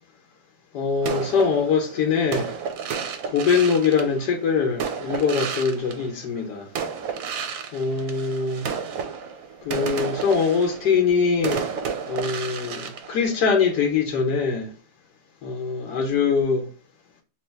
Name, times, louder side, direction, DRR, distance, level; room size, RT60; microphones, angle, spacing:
voice 1, 0.7-2.5 3.2-6.7 7.7-8.7 9.6-11.6 12.1-14.7 15.4-16.7, left 5 dB, 85° left, 1.3 m, -23 dB
sound 1, 1.0-6.4 6.8-13.9, right 6 dB, 65° right, 0.9 m, -32 dB
3.1 x 3.1 x 3.3 m
omnidirectional pair, 1.8 m